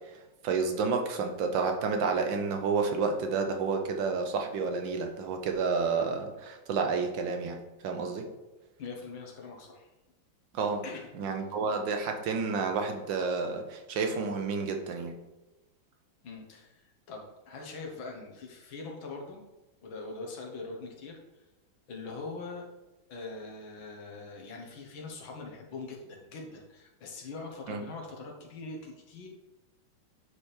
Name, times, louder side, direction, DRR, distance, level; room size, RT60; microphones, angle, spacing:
voice 1, 0.1-7.6 7.8-8.3 10.5-10.8 11.1-15.1 27.7-27.8, right 4 dB, 75° right, 4 dB, 1.6 m, -30 dB
voice 2, 8.8-9.9 10.8-11.1 16.2-19.4 19.8-21.4 21.9-22.7 23.1-29.3, left 3 dB, 90° left, 0 dB, 2.0 m, -42 dB
9.2 x 3.4 x 4.3 m, 1.1 s
omnidirectional pair, 2.1 m